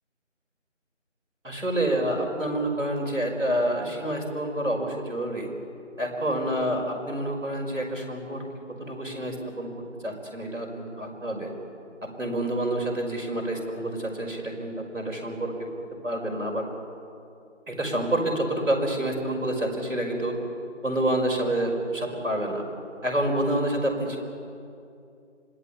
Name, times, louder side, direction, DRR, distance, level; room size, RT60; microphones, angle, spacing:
voice 1, 1.4-5.5 6.0-8.5 8.8-9.7 10.0-11.5 12.0-15.7 16.0-16.7 17.7-20.4 20.8-22.6 23.0-24.2, right 1 dB, 90° right, 1 dB, 5.5 m, -28 dB
26.0 x 18.5 x 8.7 m, 2.6 s
figure-of-eight pair, 180°, 37 cm